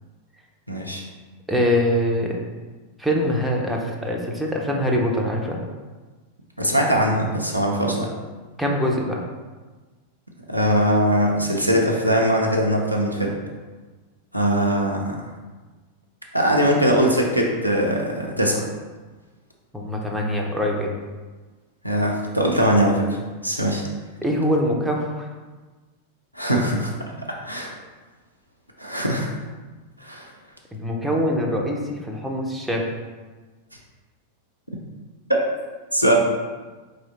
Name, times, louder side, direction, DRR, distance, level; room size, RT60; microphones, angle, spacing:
voice 1, 0.7-1.0 6.6-8.1 10.5-13.3 14.3-15.2 16.3-18.7 21.8-23.2 23.4-23.9 26.3-26.9 27.2-27.7 28.8-29.3 30.0-30.3 35.9-36.2, equal, 90° right, -1 dB, 0.6 m, -21 dB
voice 2, 1.5-2.4 3.0-5.6 8.6-9.2 19.7-20.9 24.2-25.3 30.7-32.9, equal, 5° right, -1 dB, 0.7 m, -23 dB
4.2 x 3.2 x 4.0 m, 1.3 s
figure-of-eight pair, 90°, 0 cm